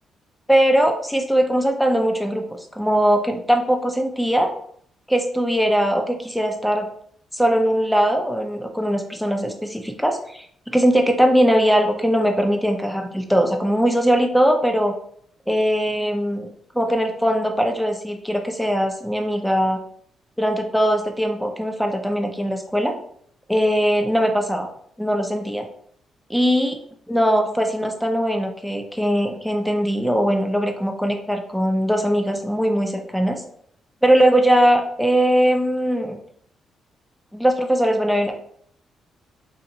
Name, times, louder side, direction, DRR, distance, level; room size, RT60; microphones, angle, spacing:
voice 1, 0.5-2.4 2.8-4.5 5.1-6.9 7.3-15.0 15.5-16.5 16.7-19.8 20.4-22.9 23.5-24.7 25.0-25.7 26.3-26.8 27.1-33.4 34.0-36.2 37.3-38.3, equal, ahead, 3 dB, 0.6 m, -20 dB
4.1 x 2.5 x 2.8 m, 0.63 s
cardioid pair, 115°, 0 cm